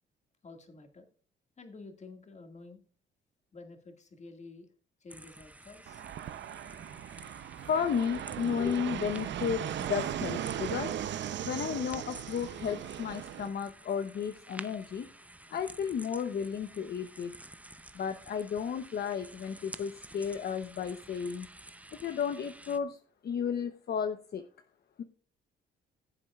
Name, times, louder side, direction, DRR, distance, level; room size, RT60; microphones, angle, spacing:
voice 1, 0.4-1.1 1.6-2.8 3.5-4.7 5.0-6.0, left 3 dB, 35° left, 6 dB, 2.0 m, -50 dB
sound 1, 5.1-22.8, right 1 dB, 5° right, 0.6 m, -51 dB
Fixed-wing aircraft airplane, 5.9-13.5, right 10 dB, 65° right, 0.7 m, -38 dB
voice 2, 7.6-10.9 11.4-15.1 15.5-17.3 17.9-21.5 22.0-23.0 23.2-24.4 25.0-25.1, left 7 dB, 55° left, 8 dB, 0.8 m, -33 dB
16.0 x 7.5 x 2.4 m, 0.39 s
cardioid pair, 90°, 20 cm